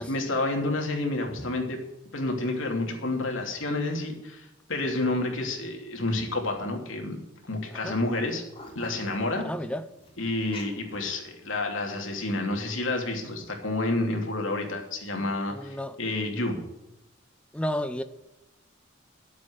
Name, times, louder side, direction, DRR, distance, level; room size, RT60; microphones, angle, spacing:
voice 1, 0.0-1.8 2.1-7.2 7.4-8.4 8.7-9.5 10.2-16.6, left 2 dB, 75° left, 2.9 m, -29 dB
sound 1, 7.7-7.8 8.0-11.7 12.2-12.7, left 2 dB, 25° left, 3.1 m, -46 dB
voice 2, 9.4-9.9 15.5-16.0 17.5-18.0, left 1 dB, 5° left, 0.7 m, -32 dB
11.5 x 8.1 x 8.0 m
head